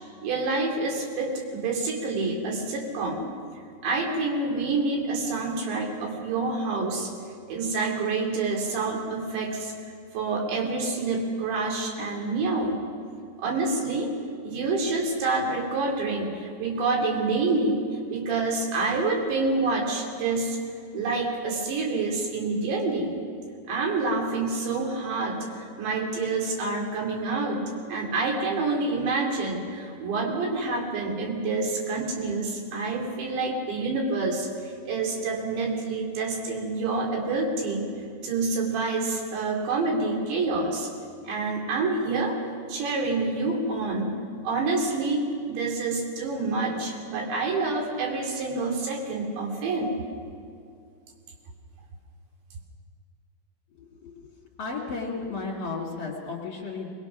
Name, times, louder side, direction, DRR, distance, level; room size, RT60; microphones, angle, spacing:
voice 1, 0.2-3.3 3.8-7.1 7.5-9.7 10.1-12.8 13.4-14.1 14.4-17.8 18.1-20.6 20.9-23.2 23.7-27.6 27.9-37.9 38.2-40.9 41.3-42.4 42.7-44.2 44.4-50.0, right 3 dB, 80° right, 0 dB, 5.2 m, -27 dB
voice 2, 53.8-54.1 54.6-56.9, left 4 dB, 40° left, -2 dB, 2.8 m, -33 dB
23.0 x 20.0 x 6.1 m, 2.4 s
omnidirectional pair, 5.1 m